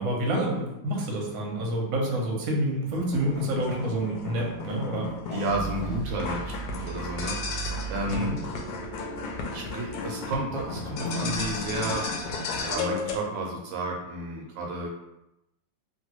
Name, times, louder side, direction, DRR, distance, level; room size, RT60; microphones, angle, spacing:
voice 1, 0.0-5.1 8.1-8.4, right 1 dB, 60° right, -1 dB, 1.0 m, -28 dB
sound 1, 2.9-13.2, left 3 dB, 75° left, 1.0 m, -34 dB
sound 2, 5.3-11.9, right 5 dB, 15° right, 0.3 m, -39 dB
voice 2, 5.3-7.4 7.9-8.4 9.5-12.1 12.6-14.9, right 2 dB, 75° right, -1 dB, 1.2 m, -32 dB
3.0 x 2.5 x 3.0 m, 0.89 s
omnidirectional pair, 2.1 m